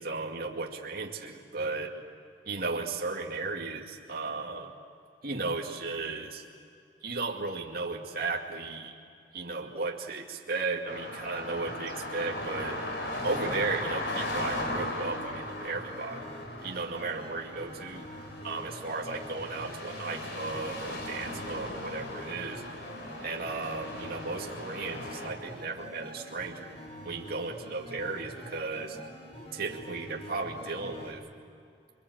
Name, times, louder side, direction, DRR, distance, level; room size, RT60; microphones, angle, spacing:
voice 1, 0.0-1.9 2.5-4.7 5.2-6.4 7.0-9.0 9.3-12.9 13.2-16.2 16.6-18.0 18.4-22.6 23.2-26.8 27.0-29.0 29.5-31.2, right 3 dB, 60° right, -1 dB, 2.3 m, -35 dB
sound 1, 10.9-25.3, left 1 dB, 70° left, 4.2 m, -38 dB
sound 2, 11.3-31.1, equal, 35° left, 6.0 m, -46 dB
28.0 x 24.0 x 8.2 m, 2.4 s
head